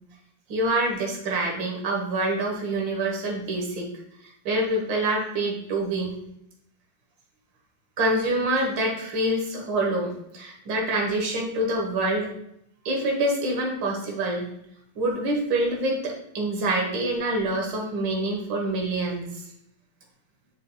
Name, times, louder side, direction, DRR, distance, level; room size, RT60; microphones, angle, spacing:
voice 1, 0.5-3.9 4.5-6.1 8.0-12.3 12.9-14.5 15.0-19.4, right 1 dB, 80° right, 0 dB, 2.0 m, -26 dB
7.5 x 6.3 x 2.2 m, 0.74 s
omnidirectional pair, 2.0 m